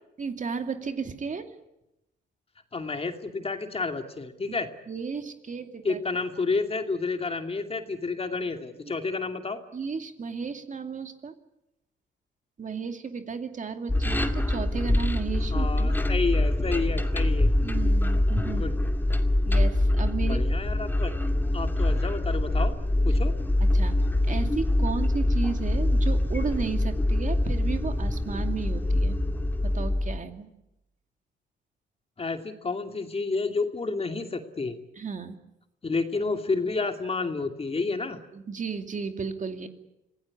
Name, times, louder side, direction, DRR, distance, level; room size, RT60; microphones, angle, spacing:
voice 1, 0.2-1.5 4.9-6.0 9.7-11.3 12.6-16.0 17.6-18.6 19.5-20.4 23.1-23.2 23.6-24.0 24.2-29.2 29.6-30.5 35.0-35.4 38.3-39.7, right 5 dB, 40° right, 7 dB, 2.5 m, -34 dB
voice 2, 2.7-4.7 5.8-9.6 15.5-17.5 18.5-18.7 20.3-21.1 21.5-22.7 23.0-23.3 32.2-34.8 35.8-38.2, left 3 dB, 30° left, 6 dB, 2.5 m, -30 dB
sound 1, 13.9-30.2, left 1 dB, 10° left, 2.3 m, -24 dB
26.0 x 17.0 x 9.9 m, 0.90 s
cardioid pair, 90°, 20 cm